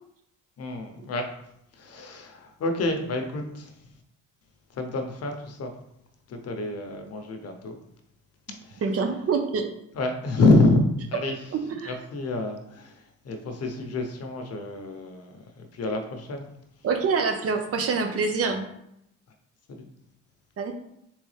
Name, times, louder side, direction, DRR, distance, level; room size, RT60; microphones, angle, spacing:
voice 1, 0.6-1.2 1.8-3.7 4.7-5.7 6.3-7.8 8.6-8.8 9.9-10.8 11.1-11.4 11.9-13.0 13.2-16.5 19.7-19.9, left 2 dB, 55° left, 4 dB, 0.8 m, -27 dB
voice 2, 8.8-9.7 11.7-11.9 16.8-18.7 20.6-20.7, right 4 dB, 50° right, 5 dB, 0.7 m, -25 dB
3.9 x 3.2 x 3.3 m, 0.78 s
cardioid pair, 90°, 30 cm